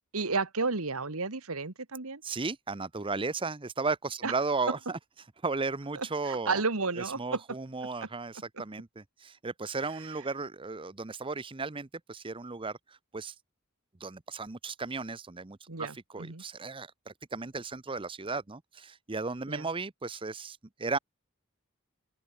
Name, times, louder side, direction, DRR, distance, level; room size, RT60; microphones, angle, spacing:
voice 1, 0.1-2.2 4.2-4.3 6.0-7.4 15.7-16.4 19.5-19.7, right 4 dB, 80° right, 1.8 m, -32 dB
voice 2, 2.2-5.0 5.4-6.6 7.0-13.3 14.0-21.0, right 4 dB, 25° right, 0.8 m, -35 dB
open air
head